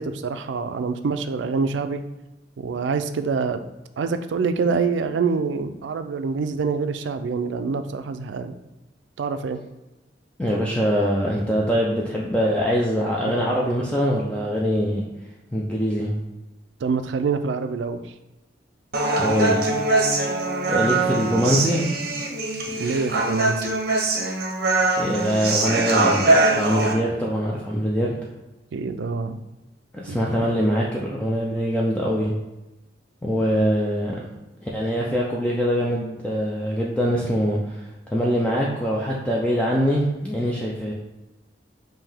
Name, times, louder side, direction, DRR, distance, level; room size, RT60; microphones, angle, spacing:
voice 1, 0.0-2.0 2.6-3.6 4.0-8.5 9.2-9.6 13.3-13.4 16.8-18.0 22.8-23.7 28.7-29.4 30.1-30.2, right 5 dB, 75° right, 9 dB, 0.4 m, -26 dB
voice 2, 10.4-15.0 15.5-16.1 19.2-19.7 20.7-21.8 24.9-28.1 29.9-32.3 33.2-34.2 34.6-40.9, equal, 5° left, -4 dB, 0.4 m, -23 dB
Human voice, 18.9-26.9, right 2 dB, 55° right, 0.7 m, -22 dB
5.5 x 2.7 x 3.4 m, 1.0 s
head